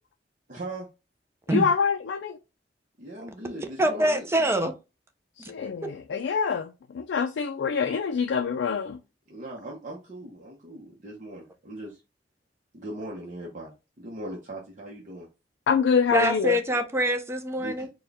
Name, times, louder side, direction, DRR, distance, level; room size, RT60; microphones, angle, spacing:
voice 1, 0.5-0.9 3.0-4.5 9.3-12.0 12.7-13.7 14.0-15.3 17.6-17.9, right 1 dB, 45° right, 0.8 m, -39 dB
voice 2, 1.5-2.4 5.4-9.0 15.7-16.6, left 6 dB, 75° left, 0.3 m, -25 dB
voice 3, 3.8-4.7 5.8-5.9 16.1-17.9, equal, 15° right, 0.5 m, -24 dB
4.2 x 2.3 x 3.4 m
head